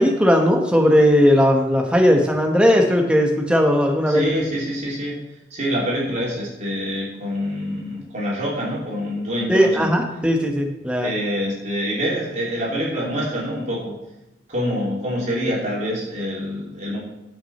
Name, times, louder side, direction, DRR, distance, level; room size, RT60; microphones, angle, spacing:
voice 1, 0.0-4.2 9.5-11.1, equal, 5° right, 2 dB, 1.2 m, -17 dB
voice 2, 4.1-5.2 5.5-9.9 11.0-14.0 14.5-17.0, equal, 40° right, -5 dB, 3.1 m, -26 dB
14.5 x 6.2 x 4.3 m, 0.96 s
head